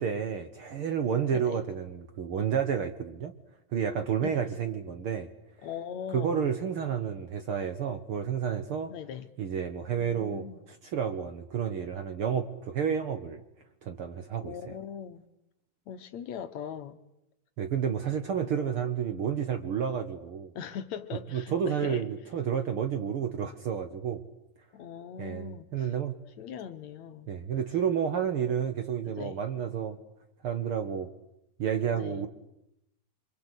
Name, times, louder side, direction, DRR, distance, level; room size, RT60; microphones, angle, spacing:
voice 1, 0.0-3.3 3.7-5.3 6.1-8.9 9.4-13.4 13.8-14.7 17.6-20.5 21.3-24.2 25.2-26.2 27.3-30.0 30.4-31.1 31.6-32.3, right 8 dB, 55° right, 1.6 m, -30 dB
voice 2, 1.3-1.6 4.2-4.5 5.6-6.4 8.9-9.3 10.0-10.6 14.4-15.2 15.9-17.0 18.4-18.8 20.6-22.1 24.7-25.9 26.4-27.3 29.0-29.4 31.9-32.3, left 8 dB, 65° left, 2.2 m, -40 dB
26.5 x 26.0 x 8.2 m
omnidirectional pair, 3.7 m